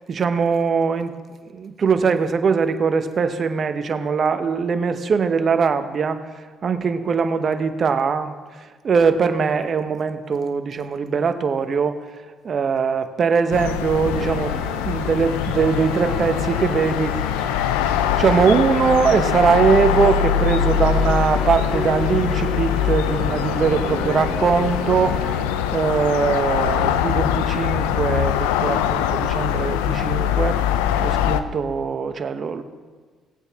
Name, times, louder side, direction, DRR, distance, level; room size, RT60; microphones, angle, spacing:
voice 1, 0.1-1.1 1.5-6.2 6.6-12.0 12.4-14.5 14.8-17.7 18.2-25.2 25.7-30.6 31.0-32.6, right 5 dB, 50° right, 9 dB, 0.9 m, -21 dB
sound 1, 13.5-31.4, left 9 dB, 85° left, 0.4 m, -22 dB
sound 2, 14.0-25.4, equal, 50° left, 2.9 m, -32 dB
18.0 x 8.1 x 3.6 m, 1.5 s
hypercardioid pair, 60°, 0 cm